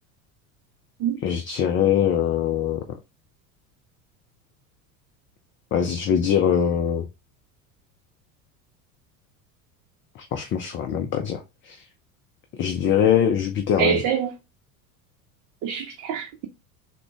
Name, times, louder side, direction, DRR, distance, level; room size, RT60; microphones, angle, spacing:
voice 1, 1.2-2.8 5.7-7.1 10.3-11.8 12.6-14.0, left 9 dB, 30° left, 0.4 m, -22 dB
voice 2, 13.8-14.3 15.6-16.5, right 8 dB, 45° right, 0.7 m, -25 dB
3.6 x 2.2 x 3.5 m
hypercardioid pair, 80°, 45 cm